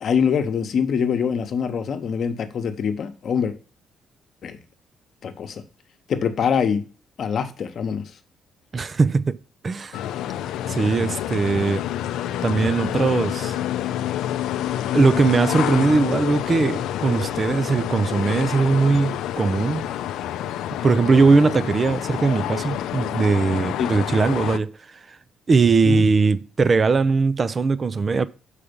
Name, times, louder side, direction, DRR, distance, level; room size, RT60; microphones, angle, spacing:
voice 1, 0.0-3.5 4.4-4.6 5.2-5.6 6.1-6.8 7.2-8.0 23.8-23.9 25.8-26.1, left 7 dB, 60° left, 1.0 m, -24 dB
voice 2, 8.7-9.4 9.6-10.0 10.7-11.9 12.4-13.6 14.9-19.9 20.8-25.0 25.5-28.2, right 4 dB, 40° right, 0.5 m, -20 dB
sound 1, 9.9-24.6, left 11 dB, 85° left, 0.4 m, -28 dB
5.8 x 4.9 x 5.2 m
cardioid pair, 75°, 0 cm